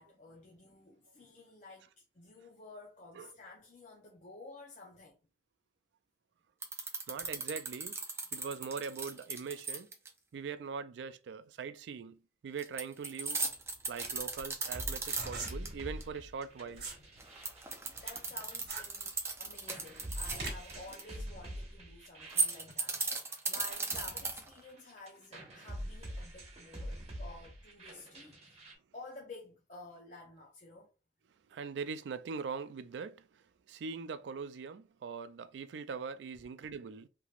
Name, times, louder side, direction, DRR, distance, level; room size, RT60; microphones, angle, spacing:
voice 1, 0.0-5.2 17.9-19.1 19.4-28.6 28.9-30.9, left 3 dB, 45° left, 0.6 m, -52 dB
sound 1, 6.6-10.1 12.6-15.7 16.0-16.1 17.2-21.0 22.2-24.6, right 3 dB, 15° right, 0.5 m, -36 dB
voice 2, 7.1-8.0 8.3-9.9 10.3-13.4 13.9-16.9 31.5-37.1, right 5 dB, 90° right, 0.3 m, -42 dB
sound 2, 13.4-17.0 17.4-20.8, right 3 dB, 65° right, 1.2 m, -44 dB
sound 3, 14.7-19.1 19.4-28.7, equal, 35° right, 1.2 m, -46 dB
3.2 x 2.9 x 2.4 m
head